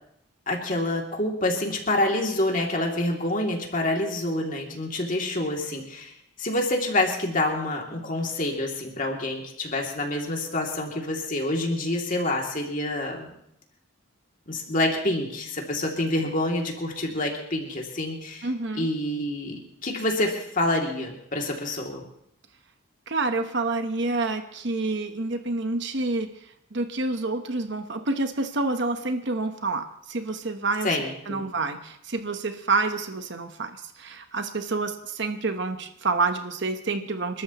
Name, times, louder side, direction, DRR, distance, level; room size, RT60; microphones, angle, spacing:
voice 1, 0.5-6.1 6.4-13.3 14.5-18.5 18.7-22.0 30.8-31.5, left 1 dB, 40° left, 0 dB, 2.6 m, -27 dB
voice 2, 18.4-18.9 23.1-26.3 26.7-30.9 31.3-33.7 34.0-37.4, right 3 dB, 60° right, 7 dB, 1.0 m, -28 dB
29.0 x 13.0 x 3.0 m, 0.73 s
head